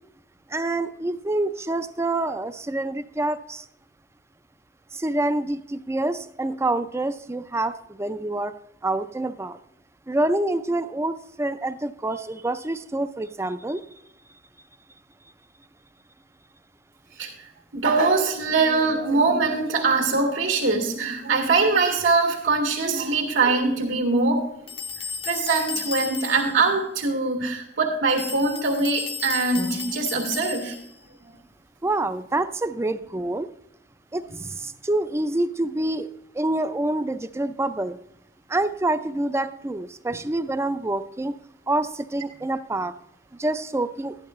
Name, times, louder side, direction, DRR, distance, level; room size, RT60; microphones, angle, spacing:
voice 1, 0.5-3.7 4.9-8.5 8.8-9.6 10.1-13.8 31.8-33.5 34.1-36.1 36.3-38.0 38.5-41.4 41.7-42.9 43.4-44.2, right 2 dB, 15° right, 12 dB, 0.4 m, -27 dB
voice 2, 17.7-24.5 25.2-30.8 31.2-31.3 34.3-34.4, right 3 dB, 80° right, 1 dB, 2.0 m, -22 dB
sound 1, 24.7-26.6 28.1-31.0, left 6 dB, 30° left, 0.6 m, -34 dB
12.5 x 11.0 x 3.1 m, 0.80 s
head